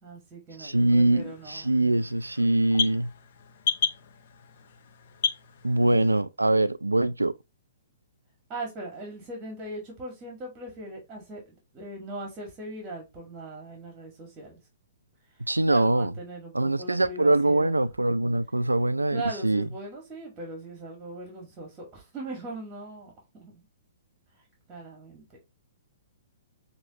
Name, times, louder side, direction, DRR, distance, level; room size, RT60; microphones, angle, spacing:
voice 1, 0.0-1.7 8.5-14.6 15.7-17.8 19.1-23.6 24.7-25.2, right 2 dB, 25° right, 1.9 m, -39 dB
voice 2, 0.6-3.1 5.6-7.3 15.5-16.1 16.5-19.7, right 2 dB, 90° right, 0.4 m, -23 dB
sound 1, 0.7-6.2, left 6 dB, 55° left, 0.7 m, -34 dB
6.2 x 3.0 x 2.9 m
figure-of-eight pair, 115°, 0 cm